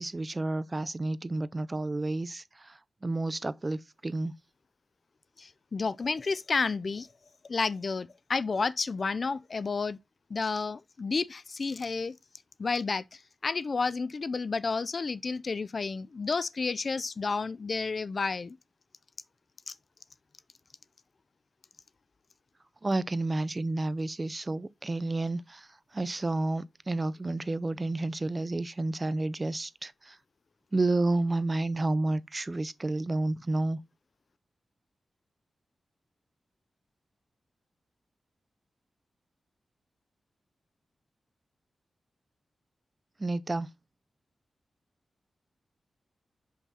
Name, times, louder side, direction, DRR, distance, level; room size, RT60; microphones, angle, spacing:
voice 1, 0.0-4.4 22.8-25.7 25.9-30.2 30.7-33.8 43.2-43.7, right 2 dB, 25° right, 0.5 m, -30 dB
voice 2, 5.4-7.1 7.5-10.0 10.3-12.1 12.6-13.0 13.4-18.6, left 4 dB, 50° left, 0.3 m, -31 dB
6.0 x 5.6 x 4.1 m
wide cardioid pair, 100°, 0 cm